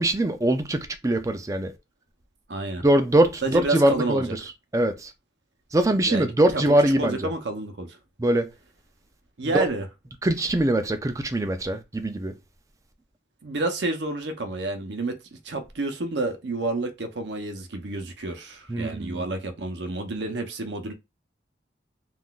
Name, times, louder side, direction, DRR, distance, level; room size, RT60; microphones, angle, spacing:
voice 1, 0.0-1.7 2.8-4.4 4.7-5.1 5.7-7.3 8.2-8.5 9.4-9.6 10.2-12.3 18.7-19.3, right 1 dB, 20° right, 0.4 m, -22 dB
voice 2, 2.5-2.8 3.4-4.2 6.1-8.0 9.4-9.8 13.4-15.2 15.4-20.9, right 2 dB, 80° right, 0.7 m, -29 dB
3.7 x 2.4 x 2.3 m
head